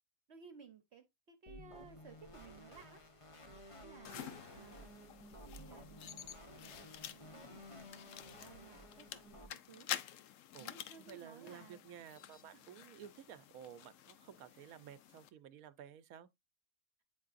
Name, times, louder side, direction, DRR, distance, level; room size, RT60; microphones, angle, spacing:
voice 1, 0.3-3.5 3.8-4.2 4.5-7.9 8.3-9.9 10.6-11.8 12.5-12.6 14.5-14.8, right 5 dB, 55° right, 1.0 m, -59 dB
sound 1, 1.5-9.5, equal, 25° left, 0.8 m, -55 dB
sound 2, 4.0-6.7, right 3 dB, 25° right, 0.5 m, -61 dB
sound 3, 4.1-15.3, left 11 dB, 70° left, 0.9 m, -49 dB
voice 2, 11.1-16.3, right 9 dB, 80° right, 1.1 m, -53 dB
9.1 x 4.7 x 2.4 m
omnidirectional pair, 1.5 m